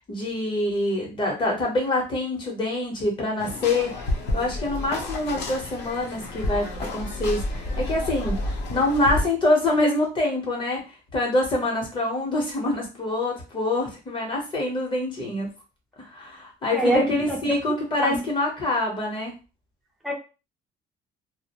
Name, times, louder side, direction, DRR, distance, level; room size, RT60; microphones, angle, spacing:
voice 1, 0.0-3.9 4.3-15.5 16.0-19.3, left 2 dB, 25° left, -1 dB, 0.8 m, -25 dB
sound 1, 3.4-9.2, left 1 dB, 65° left, 0.6 m, -30 dB
voice 2, 16.7-17.5 18.0-18.2 20.0-20.1, equal, ahead, 0 dB, 0.4 m, -24 dB
2.3 x 2.0 x 2.8 m, 0.31 s
cardioid pair, 165°, 19 cm